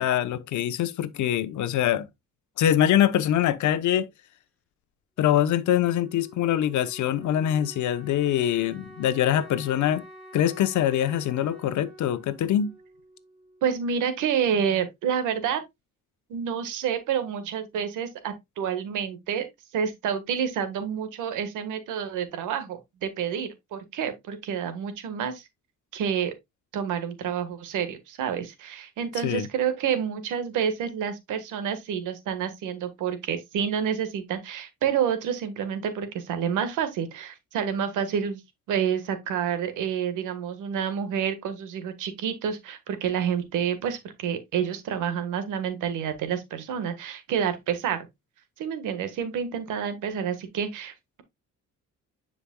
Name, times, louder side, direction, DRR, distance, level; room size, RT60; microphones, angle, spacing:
voice 1, 0.0-2.1 2.6-4.1 5.2-10.0 10.3-12.7 29.2-29.5, left 11 dB, 75° left, 0.9 m, -24 dB
Wind instrument woodwind instrument, 5.2-13.9, right 1 dB, 5° left, 4.4 m, -48 dB
voice 2, 13.6-15.6 16.3-19.5 19.7-25.4 25.9-26.3 26.7-38.4 38.7-48.1 48.6-50.9, right 8 dB, 90° right, 1.5 m, -28 dB
10.0 x 5.2 x 2.2 m
cardioid pair, 90°, 30 cm